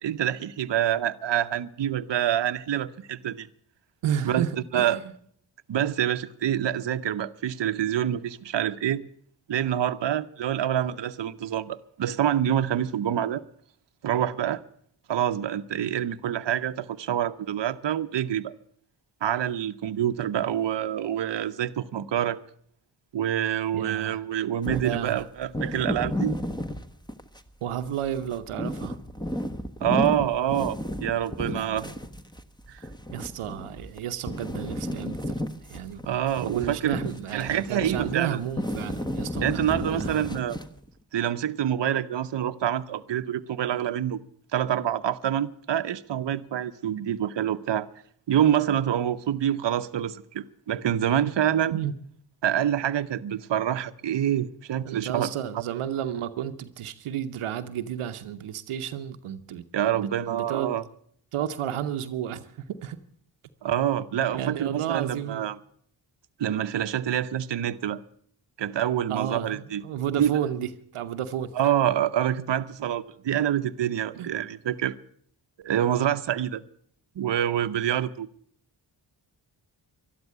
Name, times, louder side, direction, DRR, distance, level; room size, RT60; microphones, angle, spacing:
voice 1, 0.0-3.5 4.2-4.4 4.7-5.0 5.7-9.0 9.5-13.4 14.0-14.6 15.1-18.5 19.2-22.4 23.1-26.4 29.8-31.8 32.7-32.8 36.1-37.0 37.3-38.4 39.4-40.6 41.1-44.2 44.5-47.9 48.3-51.7 52.4-55.3 59.7-60.8 63.6-65.6 66.4-68.0 68.6-69.8 70.2-70.3 71.6-74.9 75.6-76.6 77.2-78.3, right 10 dB, 60° right, 0.8 m, -26 dB
voice 2, 4.0-5.1 23.7-24.2 24.7-25.2 27.6-29.0 31.4-31.9 33.1-35.4 35.7-36.0 36.4-40.3 51.7-51.9 54.8-59.7 59.9-60.7 61.3-63.0 64.3-65.5 69.1-71.7 74.1-74.3, right 10 dB, 90° right, 0.8 m, -32 dB
sound 1, 24.6-27.5 27.9-34.0 34.3-40.9, left 1 dB, 10° left, 1.3 m, -33 dB
12.5 x 12.0 x 8.3 m
cardioid pair, 40°, 49 cm